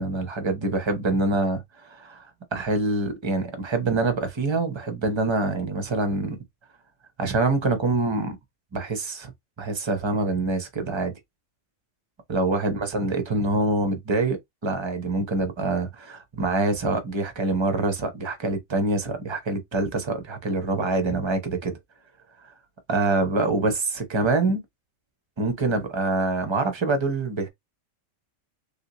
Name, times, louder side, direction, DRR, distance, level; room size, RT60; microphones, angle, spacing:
voice 1, 0.0-6.4 7.2-8.4 8.7-9.3 9.6-11.1 12.3-14.4 14.6-21.8 22.9-24.6 25.4-27.5, right 3 dB, 30° right, 0.6 m, -25 dB
3.3 x 2.7 x 2.8 m
omnidirectional pair, 1.3 m